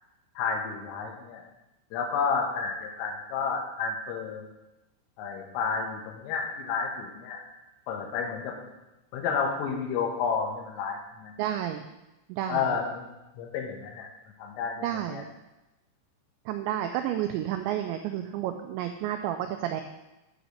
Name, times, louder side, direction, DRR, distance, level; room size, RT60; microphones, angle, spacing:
voice 1, 0.4-1.4 1.9-4.4 5.2-7.5 7.9-8.6 9.1-11.3 12.5-14.1 14.4-15.2, left 5 dB, 85° left, 1 dB, 3.8 m, -31 dB
voice 2, 11.4-11.8 12.3-12.8 14.8-15.3 16.5-19.8, right 11 dB, 90° right, 6 dB, 2.5 m, -31 dB
9.5 x 5.0 x 6.4 m, 0.99 s
omnidirectional pair, 5.7 m